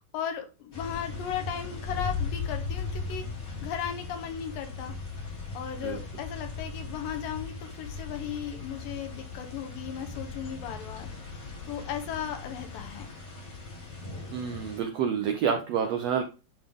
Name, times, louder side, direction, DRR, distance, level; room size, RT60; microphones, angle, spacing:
voice 1, 0.1-3.2 3.6-4.9 5.5-11.1 11.7-13.1, left 9 dB, 85° left, 6 dB, 2.6 m, -36 dB
sound 1, 0.7-14.8, left 4 dB, 40° left, 2.1 m, -38 dB
voice 2, 14.3-16.2, right 7 dB, 90° right, 5 dB, 1.4 m, -28 dB
11.0 x 3.7 x 3.5 m, 0.31 s
omnidirectional pair, 3.9 m